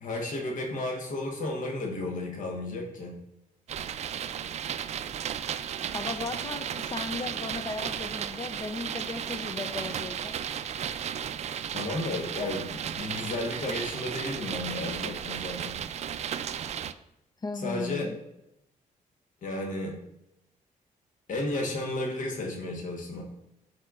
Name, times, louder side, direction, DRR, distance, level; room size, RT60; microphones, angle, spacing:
voice 1, 0.0-3.2 11.7-15.8 17.5-18.1 19.4-20.1 21.3-23.2, left 2 dB, 65° left, 1.4 m, -33 dB
sound 1, 3.7-16.9, right 9 dB, 50° right, 0.4 m, -34 dB
voice 2, 5.9-10.3 17.4-18.2, left 3 dB, 30° left, 0.6 m, -36 dB
11.5 x 4.4 x 2.5 m
cardioid pair, 105°, 14 cm